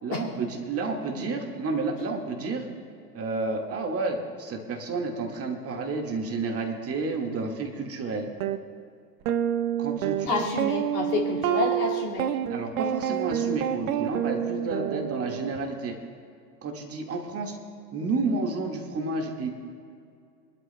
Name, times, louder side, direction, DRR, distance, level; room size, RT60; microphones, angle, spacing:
voice 1, 0.0-2.7 3.1-8.3 9.8-10.6 12.5-16.0 16.6-17.6 17.9-19.5, right 3 dB, 30° right, 2 dB, 1.8 m, -30 dB
sound 1, 8.4-8.6 9.3-15.6, right 10 dB, 55° right, 0.8 m, -28 dB
voice 2, 10.3-12.3, left 3 dB, 60° left, -2 dB, 2.3 m, -28 dB
24.0 x 12.0 x 2.2 m, 2.4 s
figure-of-eight pair, 80°, 50 cm